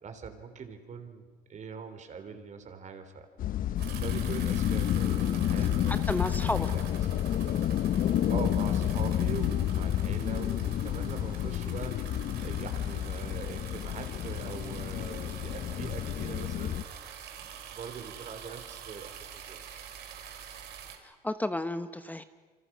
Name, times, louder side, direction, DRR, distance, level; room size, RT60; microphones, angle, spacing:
voice 1, 0.0-3.3 3.9-6.1 6.7-6.8 8.2-16.8 17.4-19.6, right 6 dB, 45° right, 7 dB, 3.6 m, -42 dB
sound 1, 3.4-16.8, left 11 dB, 55° left, 0.7 m, -30 dB
sound 2, 3.8-21.0, right 8 dB, 75° right, 3.4 m, -46 dB
voice 2, 5.6-6.7 21.0-22.2, left 1 dB, 10° left, 11 dB, 0.8 m, -33 dB
28.0 x 25.5 x 6.2 m, 1.4 s
cardioid pair, 110°, 17 cm